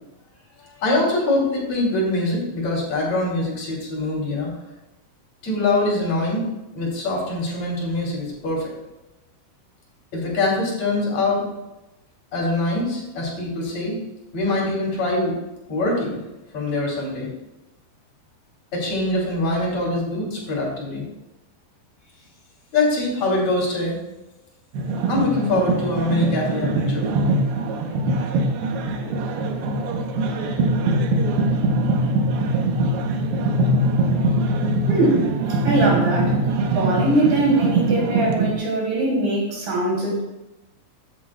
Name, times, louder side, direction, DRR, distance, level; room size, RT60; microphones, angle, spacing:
voice 1, 0.6-4.5 5.4-6.4 6.7-8.7 10.1-11.5 12.3-14.0 14.3-15.4 15.7-16.2 16.5-17.3 18.7-21.0 22.7-24.0 25.1-27.1, left 2 dB, 40° left, -3 dB, 3.8 m, -23 dB
sound 1, 24.7-38.5, right 2 dB, 75° right, 2.7 m, -22 dB
voice 2, 34.9-35.3 35.6-36.4 36.7-40.2, right 2 dB, 50° right, -3 dB, 4.4 m, -21 dB
13.5 x 8.6 x 2.3 m, 0.97 s
omnidirectional pair, 5.2 m